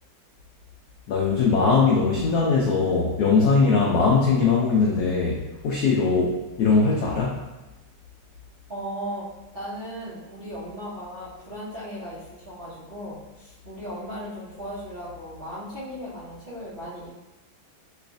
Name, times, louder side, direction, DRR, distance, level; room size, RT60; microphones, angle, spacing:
voice 1, 1.1-7.4, left 4 dB, 90° left, -4 dB, 0.8 m, -21 dB
voice 2, 8.7-17.1, equal, 70° right, -11 dB, 0.5 m, -37 dB
3.2 x 3.1 x 2.5 m, 1.1 s
omnidirectional pair, 2.3 m